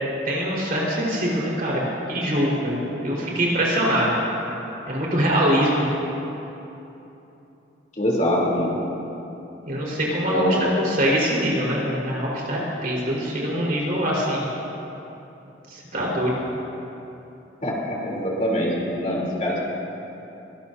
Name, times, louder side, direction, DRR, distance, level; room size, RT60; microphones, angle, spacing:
voice 1, 0.3-1.8 2.1-4.1 4.9-5.9 9.6-14.5 15.7-16.4, equal, 50° right, -5 dB, 4.5 m, -23 dB
voice 2, 8.0-8.7 10.3-10.6 17.6-19.6, equal, 40° left, -4 dB, 3.4 m, -24 dB
23.5 x 20.0 x 2.8 m, 3.0 s
head